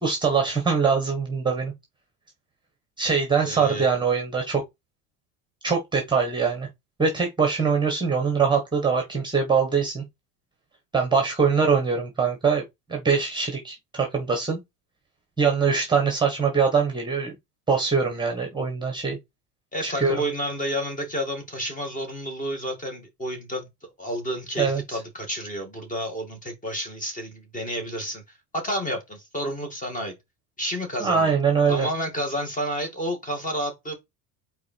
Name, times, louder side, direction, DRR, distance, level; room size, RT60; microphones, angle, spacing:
voice 1, 0.0-1.7 3.0-4.6 5.6-6.7 7.0-10.0 10.9-12.6 12.9-14.6 15.4-17.3 17.7-19.2 19.8-20.2 24.6-25.0 31.0-31.9, right 5 dB, 10° right, 1.4 m, -23 dB
voice 2, 3.4-3.9 19.7-23.7 24.0-28.2 28.5-30.2 30.6-31.3 31.7-33.9, equal, 20° left, 2.3 m, -30 dB
4.8 x 4.5 x 4.5 m
supercardioid pair, 125°, 42 cm